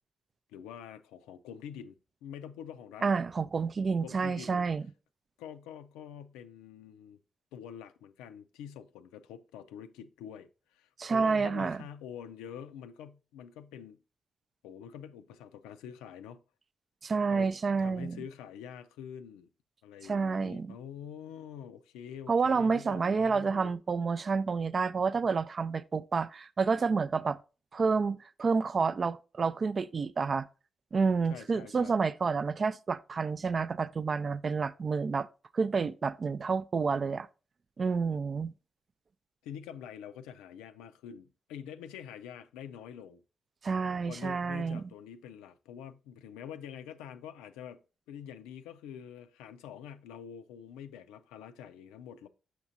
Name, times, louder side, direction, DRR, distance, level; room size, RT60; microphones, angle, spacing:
voice 1, 0.5-3.2 3.9-4.7 5.4-7.2 7.5-14.0 14.6-16.4 17.3-17.5 17.8-19.5 19.8-23.7 31.3-32.0 39.4-43.2 44.1-47.8 48.1-52.3, left 8 dB, 85° left, 0.4 m, -46 dB
voice 2, 3.0-4.9 11.0-11.8 17.0-18.2 20.0-20.7 22.3-27.4 27.7-30.5 30.9-35.3 35.5-37.3 37.8-38.5 43.6-44.8, right 5 dB, 50° right, 0.3 m, -29 dB
6.1 x 5.9 x 2.6 m
hypercardioid pair, 40°, 0 cm